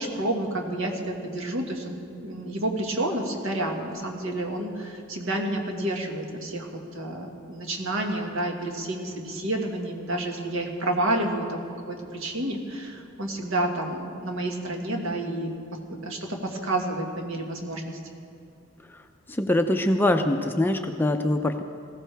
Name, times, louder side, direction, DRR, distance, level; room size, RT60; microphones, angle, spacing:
voice 1, 0.0-2.0 2.2-15.5 15.9-18.0, right 1 dB, 70° right, 1 dB, 1.8 m, -29 dB
voice 2, 19.3-21.6, left 1 dB, 10° left, 6 dB, 0.5 m, -23 dB
19.5 x 15.5 x 3.4 m, 2.4 s
head